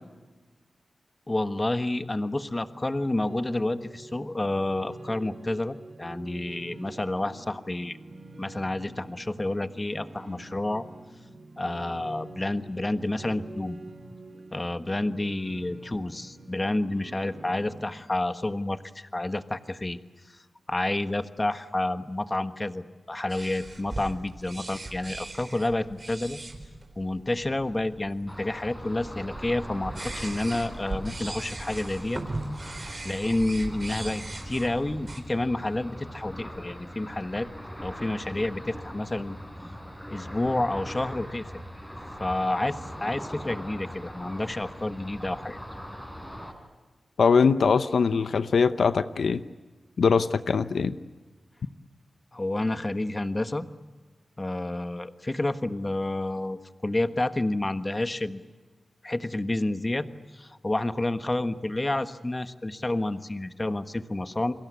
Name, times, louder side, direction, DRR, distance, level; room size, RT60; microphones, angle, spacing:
voice 1, 1.3-8.0 8.4-10.8 11.6-13.8 14.5-20.0 20.3-20.4 20.7-26.4 27.0-32.2 33.0-37.5 37.8-39.4 40.1-41.5 42.2-45.6 52.3-53.6 54.4-58.4 59.0-60.1 60.3-64.5, left 2 dB, 25° left, 10 dB, 1.4 m, -29 dB
sound 1, 3.0-17.8, right 2 dB, 60° right, 4.7 m, -46 dB
sound 2, 23.3-35.2, right 2 dB, 40° right, 4.1 m, -39 dB
Ocean, 28.3-46.5, equal, 5° left, 5.2 m, -41 dB
voice 2, 47.2-49.4 50.0-50.9, left 5 dB, 85° left, 12 dB, 0.8 m, -22 dB
30.0 x 22.5 x 8.3 m, 1.3 s
wide cardioid pair, 75°, 0 cm